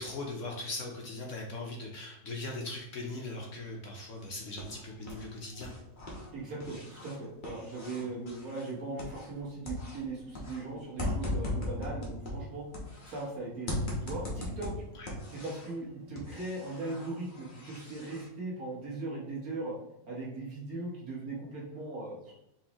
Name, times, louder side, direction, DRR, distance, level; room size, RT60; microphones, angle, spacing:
voice 1, 0.0-5.7 15.0-15.1, left 2 dB, 60° left, 0 dB, 0.9 m, -39 dB
sound 1, 4.1-5.3 5.5-9.4 9.6-13.3 13.7-15.8 16.2-18.3, left 2 dB, 35° left, 1.1 m, -39 dB
voice 2, 6.3-12.7 13.1-14.7 15.3-19.7 20.1-22.3, right 2 dB, 60° right, -4 dB, 1.9 m, -39 dB
4.4 x 3.7 x 2.9 m, 0.87 s
omnidirectional pair, 1.7 m